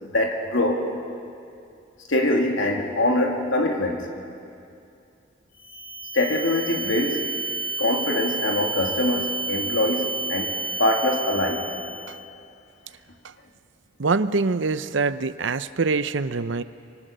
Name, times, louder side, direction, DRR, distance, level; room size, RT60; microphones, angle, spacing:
voice 1, 0.0-0.9 2.1-4.1 6.1-7.3 7.8-11.7, left 1 dB, 80° left, 2 dB, 2.7 m, -23 dB
sound 1, 5.5-12.1, right 3 dB, 45° left, 7.2 m, -30 dB
voice 2, 14.0-16.6, right 4 dB, 70° right, 14 dB, 0.7 m, -24 dB
25.0 x 24.0 x 6.8 m, 2.5 s
head